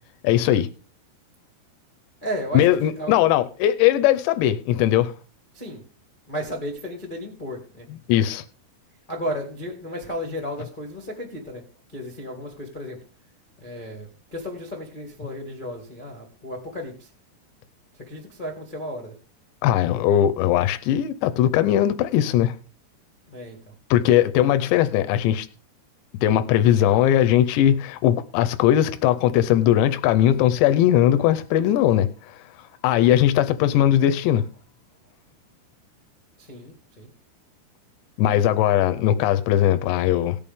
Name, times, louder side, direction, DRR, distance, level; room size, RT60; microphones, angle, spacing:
voice 1, 0.2-0.7 2.5-5.1 8.1-8.4 19.6-22.5 23.9-25.5 26.2-32.4 32.8-34.5 38.2-40.4, left 11 dB, 90° left, 2.9 m, -19 dB
voice 2, 2.2-3.2 5.5-5.8 6.3-7.9 9.1-11.6 11.9-13.0 13.6-17.1 18.1-19.1 23.3-23.7 36.4-37.1, equal, 70° left, 0.4 m, -34 dB
18.0 x 6.9 x 3.6 m
omnidirectional pair, 4.9 m